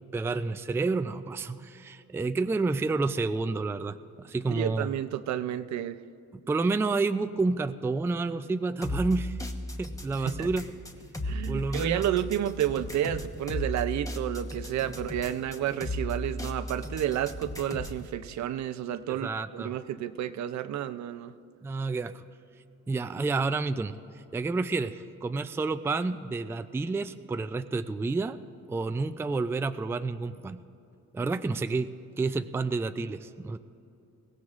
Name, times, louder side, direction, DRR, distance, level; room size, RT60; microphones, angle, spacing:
voice 1, 0.0-4.9 6.5-9.4 9.8-10.6 11.5-12.0 19.1-19.8 21.6-22.3 22.9-28.4 28.7-30.6 31.1-33.6, right 3 dB, 10° right, 10 dB, 0.3 m, -30 dB
voice 2, 4.5-6.0 10.2-10.5 11.2-21.3, right 11 dB, 65° right, 12 dB, 0.6 m, -31 dB
sound 1, 8.8-18.0, equal, 10° left, 1.0 m, -35 dB
21.5 x 16.5 x 2.5 m, 2.7 s
cardioid pair, 90°, 30 cm